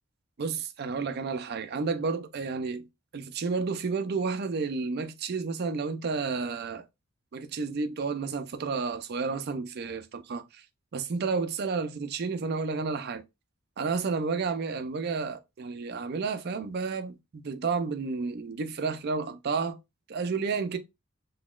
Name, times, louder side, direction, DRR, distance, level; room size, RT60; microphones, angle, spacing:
voice 1, 0.4-2.8 3.1-6.8 7.3-10.6 10.9-13.2 13.8-17.2 17.4-19.8 20.1-20.8, right 4 dB, 50° right, 0.4 m, -31 dB
4.0 x 2.9 x 2.3 m
head